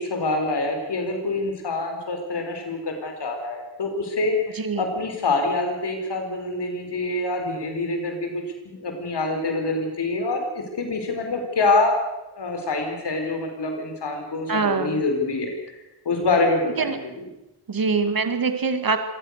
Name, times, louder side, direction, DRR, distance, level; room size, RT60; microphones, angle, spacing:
voice 1, 0.0-12.0 12.3-15.5 16.0-17.2, left 2 dB, 70° left, 3 dB, 4.7 m, -26 dB
voice 2, 14.5-15.0 16.8-17.0 17.7-19.0, right 4 dB, 55° right, 8 dB, 2.2 m, -23 dB
25.5 x 18.5 x 6.6 m, 0.96 s
wide cardioid pair, 105°, 42 cm